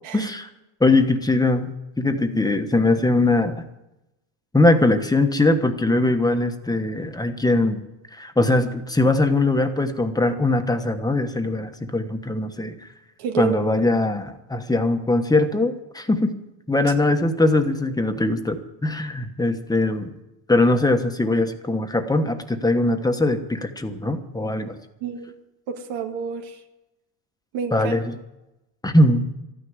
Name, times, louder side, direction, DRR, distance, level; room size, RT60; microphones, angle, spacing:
voice 1, 0.1-0.5 0.8-3.6 4.5-7.8 8.1-12.7 13.4-16.3 16.7-20.1 20.5-24.7 27.7-28.1 28.8-29.3, left 2 dB, 10° left, 7 dB, 1.2 m, -21 dB
voice 2, 13.2-13.6 25.0-25.3 25.7-26.6 27.5-27.9, right 8 dB, 85° right, 3 dB, 2.2 m, -29 dB
13.5 x 10.0 x 9.5 m, 0.94 s
cardioid pair, 130°, 48 cm